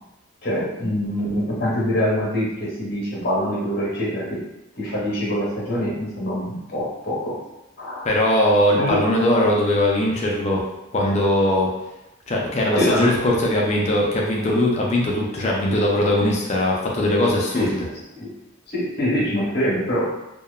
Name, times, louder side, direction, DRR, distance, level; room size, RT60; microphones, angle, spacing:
voice 1, 0.4-4.4 4.7-7.4 7.8-8.1 8.8-9.1 12.8-13.2 17.5-18.3 18.7-20.1, equal, 45° left, -6 dB, 0.9 m, -24 dB
voice 2, 8.0-10.6 10.9-11.7 12.3-17.8, left 1 dB, 30° left, -2 dB, 0.4 m, -20 dB
2.8 x 2.1 x 2.2 m, 0.93 s
head